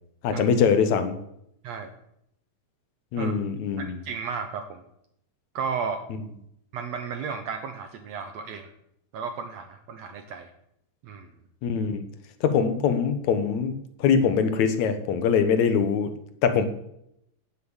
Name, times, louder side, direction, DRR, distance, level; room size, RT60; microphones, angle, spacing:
voice 1, 0.2-1.2 3.1-4.0 11.6-12.1 12.4-16.1 16.4-16.7, left 6 dB, 70° left, 9 dB, 2.5 m, -23 dB
voice 2, 1.6-1.9 3.2-3.3 3.8-4.8 5.5-6.0 6.7-8.7 9.1-10.5 11.0-11.3, right 6 dB, 65° right, 7 dB, 2.0 m, -33 dB
16.0 x 7.3 x 7.2 m, 0.77 s
omnidirectional pair, 3.5 m